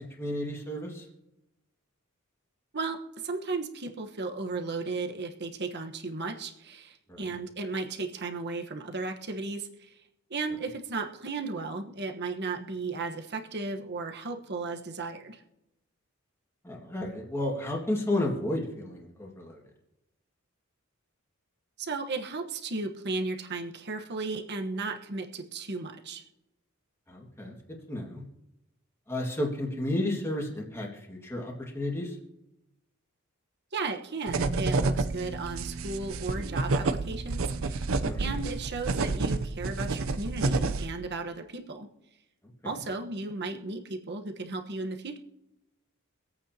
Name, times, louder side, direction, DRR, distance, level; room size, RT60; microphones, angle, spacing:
voice 1, 0.2-1.0 7.1-7.3 16.6-19.6 27.1-27.5 27.9-28.2 29.1-32.2 38.0-38.4, left 1 dB, 10° left, -1 dB, 1.9 m, -32 dB
voice 2, 2.7-9.9 10.3-15.4 21.8-26.2 33.7-41.9 42.6-45.2, right 3 dB, 50° right, 4 dB, 1.2 m, -35 dB
sound 1, 34.3-40.9, right 3 dB, 70° right, 0.6 m, -29 dB
25.5 x 8.6 x 2.9 m, 0.90 s
head